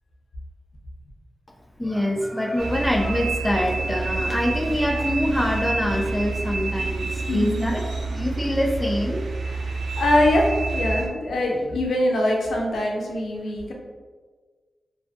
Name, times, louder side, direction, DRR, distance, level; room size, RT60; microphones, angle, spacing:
voice 1, 1.8-7.8 8.1-9.2, left 1 dB, 10° left, 2 dB, 0.3 m, -25 dB
sound 1, 2.6-11.1, right 3 dB, 85° right, 0.3 m, -28 dB
sound 2, 3.2-8.2, equal, 55° right, 0.9 m, -43 dB
voice 2, 7.3-7.7 9.4-13.7, left 1 dB, 85° left, -1 dB, 0.4 m, -23 dB
2.5 x 2.4 x 2.4 m, 1.5 s
cardioid pair, 55°, 0 cm